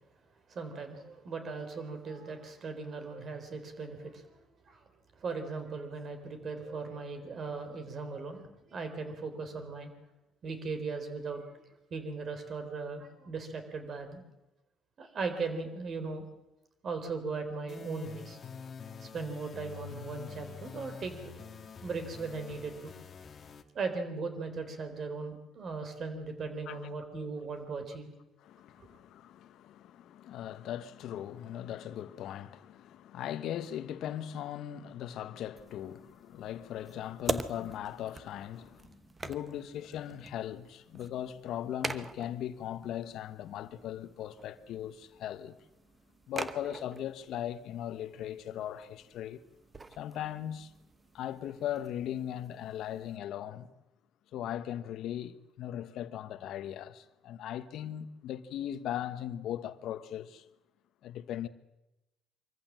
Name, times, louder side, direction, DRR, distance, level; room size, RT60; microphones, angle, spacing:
voice 1, 0.5-4.2 4.7-4.8 5.2-8.4 8.7-9.9 10.4-11.4 11.9-14.2 15.0-16.3 16.8-18.4 19.1-21.3 21.8-22.9 23.7-28.1, right 4 dB, 45° right, 3.9 m, -38 dB
sound 1, 17.7-23.6, left 6 dB, 40° left, 1.5 m, -47 dB
voice 2, 28.4-39.0 39.2-45.6 46.3-49.4 50.0-50.7 51.1-53.7 54.3-60.4 61.0-61.5, left 11 dB, 70° left, 1.1 m, -39 dB
sound 2, 35.6-53.2, right 3 dB, 25° right, 1.0 m, -44 dB
24.5 x 14.5 x 7.6 m
cardioid pair, 105°, 0 cm